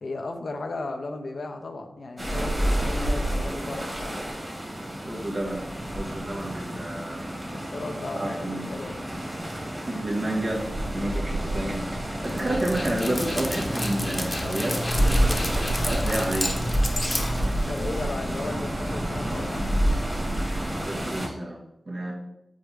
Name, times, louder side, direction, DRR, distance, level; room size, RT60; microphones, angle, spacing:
voice 1, 0.0-4.2 7.5-9.0 12.3-12.5 17.6-19.6, left 2 dB, 70° left, 5 dB, 0.9 m, -35 dB
sound 1, 2.2-21.3, right 1 dB, 25° right, 2.3 m, -29 dB
voice 2, 5.0-5.7 5.9-7.6 8.1-8.7 9.8-14.8 15.1-16.6 20.6-22.1, right 1 dB, 50° right, -3 dB, 2.0 m, -31 dB
Dog, 12.2-18.0, left 1 dB, 30° left, 1.2 m, -30 dB
7.4 x 4.4 x 3.7 m, 0.86 s
cardioid pair, 50°, 0 cm